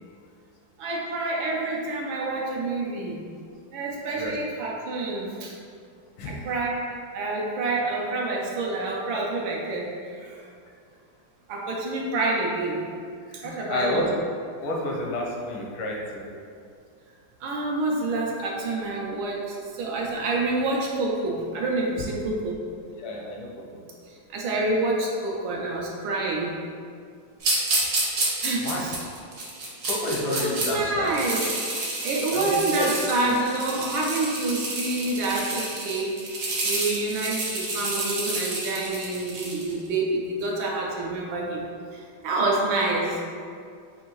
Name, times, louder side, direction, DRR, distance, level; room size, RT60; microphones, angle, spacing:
voice 1, 0.8-3.2 3.7-5.6 6.2-6.9 7.1-10.5 11.5-12.9 13.4-14.1 17.4-22.6 24.1-26.6 28.4-28.9 30.3-31.5 31.8-36.1 36.6-41.7 41.9-43.2, right 2 dB, 85° right, -2 dB, 1.5 m, -27 dB
voice 2, 13.3-14.1 14.6-16.2 23.0-23.8 28.6-28.9 29.8-31.1 32.3-32.9 33.3-33.4, left 1 dB, 80° left, -1 dB, 1.5 m, -30 dB
sound 1, 27.4-30.7 31.0-39.7, right 2 dB, 55° right, 1.0 m, -29 dB
5.7 x 2.6 x 3.0 m, 2.4 s
omnidirectional pair, 2.2 m